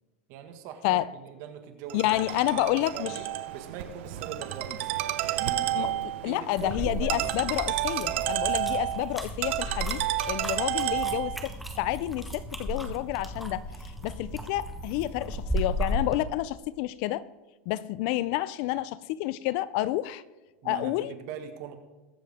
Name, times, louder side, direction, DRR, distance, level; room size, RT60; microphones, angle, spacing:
voice 1, 0.3-3.3 3.5-5.0 5.2-6.0 6.2-7.3 8.1-8.3 20.6-21.8, right 8 dB, 45° right, 1.7 m, -41 dB
voice 2, 1.9-3.2 5.7-5.9 6.2-13.7 14.0-17.3 17.7-20.2 20.6-21.1, left 16 dB, 50° left, 0.4 m, -29 dB
Ringtone, 1.9-11.5, right 13 dB, 65° right, 0.9 m, -31 dB
sound 1, 6.6-16.2, equal, ahead, 1.0 m, -35 dB
22.0 x 7.6 x 3.6 m
supercardioid pair, 150°, 7 cm